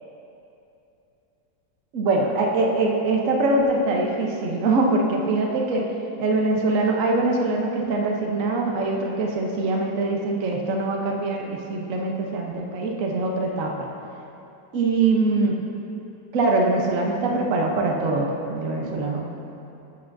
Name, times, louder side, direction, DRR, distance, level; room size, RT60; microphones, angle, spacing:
voice 1, 1.9-5.8 6.2-13.9 14.7-15.6 16.3-19.5, right 2 dB, 50° right, 0 dB, 1.2 m, -23 dB
14.0 x 8.9 x 2.7 m, 2.9 s
omnidirectional pair, 2.0 m